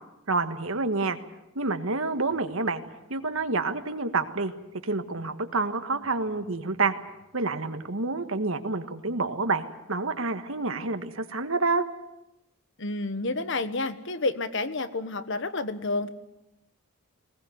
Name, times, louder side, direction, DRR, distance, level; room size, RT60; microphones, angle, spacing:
voice 1, 0.3-1.2 1.5-2.8 3.1-4.5 4.8-6.9 7.3-11.8, right 3 dB, 70° right, 8 dB, 1.6 m, -28 dB
voice 2, 12.8-16.1, left 2 dB, 55° left, 12 dB, 1.3 m, -30 dB
20.0 x 20.0 x 9.4 m, 0.94 s
head